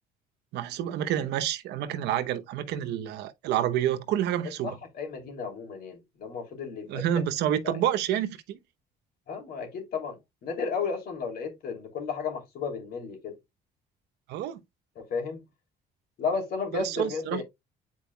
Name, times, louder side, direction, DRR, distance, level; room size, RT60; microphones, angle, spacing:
voice 1, 0.5-4.8 6.9-8.6 14.3-14.6 16.7-17.4, right 11 dB, 80° right, 0.9 m, -28 dB
voice 2, 4.6-7.0 7.6-7.7 9.3-13.3 15.0-15.4 16.2-17.4, left 5 dB, 65° left, 2.9 m, -33 dB
8.8 x 4.7 x 2.3 m
cardioid pair, 110°, 17 cm